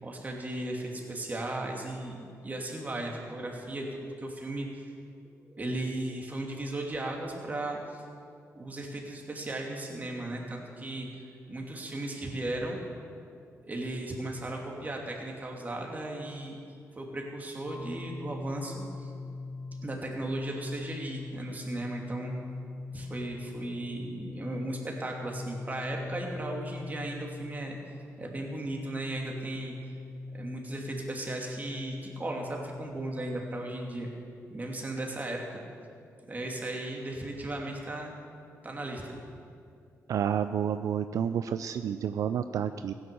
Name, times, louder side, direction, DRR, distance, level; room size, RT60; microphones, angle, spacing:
voice 1, 0.0-4.8 5.2-8.0 8.5-11.1 11.5-12.8 13.6-16.6 17.0-19.1 19.8-22.3 22.9-27.8 28.2-29.8 30.3-34.1 34.5-35.6 36.3-38.1 38.6-39.2, right 1 dB, 30° right, 0 dB, 2.8 m, -36 dB
sound 1, 17.7-34.2, left 3 dB, 35° left, 0.6 m, -42 dB
voice 2, 40.1-42.9, right 8 dB, 75° right, 11 dB, 0.4 m, -30 dB
16.0 x 10.5 x 7.0 m, 2.4 s
cardioid pair, 85°, 6 cm